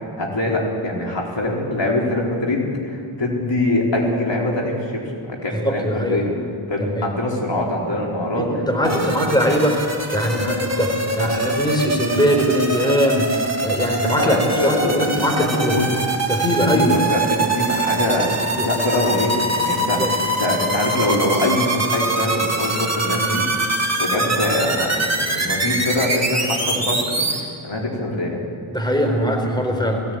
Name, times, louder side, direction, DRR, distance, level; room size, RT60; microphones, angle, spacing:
voice 1, 0.2-6.3 6.7-9.1 14.2-15.1 15.4-15.9 16.7-18.3 18.6-23.4 24.0-28.4, left 1 dB, 60° left, -2 dB, 4.2 m, -23 dB
voice 2, 5.5-6.2 6.8-7.1 8.4-9.8 10.1-13.3 13.6-15.8 16.3-17.0 18.5-18.7 20.0-20.1 28.7-30.0, equal, 10° left, 3 dB, 4.0 m, -21 dB
sound 1, 8.8-27.4, right 2 dB, 30° right, 3.3 m, -24 dB
18.5 x 17.5 x 9.3 m, 2.2 s
wide cardioid pair, 60°, 48 cm